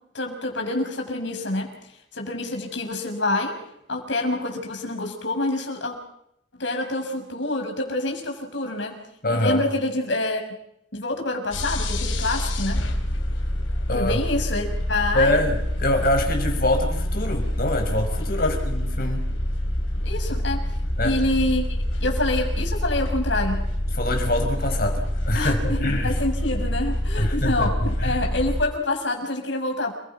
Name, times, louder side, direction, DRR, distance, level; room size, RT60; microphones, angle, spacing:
voice 1, 0.1-1.7 2.1-3.5 3.9-6.0 6.5-9.0 9.3-10.4 10.9-12.8 13.9-15.4 20.0-20.7 21.0-23.7 25.3-29.9, left 2 dB, 70° left, 3 dB, 6.2 m, -27 dB
voice 2, 9.2-9.6 13.9-14.2 15.1-19.3 21.0-21.2 23.9-26.2 27.2-28.2, left 1 dB, 50° left, 4 dB, 6.2 m, -25 dB
sound 1, 11.5-28.6, left 1 dB, 85° left, 4.5 m, -26 dB
30.0 x 22.0 x 6.0 m, 0.76 s
head